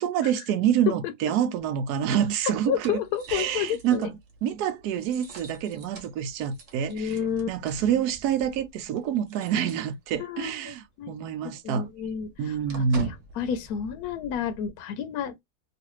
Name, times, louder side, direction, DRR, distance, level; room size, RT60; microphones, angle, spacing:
voice 1, 0.0-3.0 3.3-4.1 4.4-7.2 7.5-11.9 12.4-13.1, right 8 dB, 75° right, 1.1 m, -27 dB
sound 1, 1.6-10.4 10.7-10.9 11.2-14.7, right 3 dB, 50° right, 1.1 m, -47 dB
voice 2, 2.7-4.1 6.9-7.5 10.2-12.9 13.3-15.4, left 8 dB, 70° left, 1.0 m, -31 dB
3.1 x 2.5 x 3.0 m
omnidirectional pair, 1.7 m